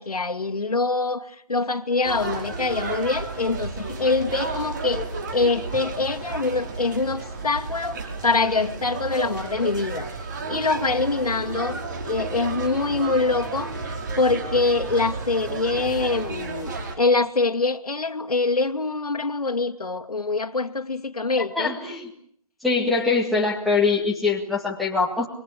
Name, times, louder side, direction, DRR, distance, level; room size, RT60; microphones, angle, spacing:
voice 1, 0.0-5.0 5.3-10.1 10.5-21.7, left 3 dB, 90° left, 2.6 m, -24 dB
sound 1, 2.0-17.0, right 3 dB, 30° right, 5.0 m, -32 dB
voice 2, 21.6-22.1 22.6-25.3, left 4 dB, ahead, 2.0 m, -23 dB
26.5 x 23.5 x 8.4 m
figure-of-eight pair, 165°, 19 cm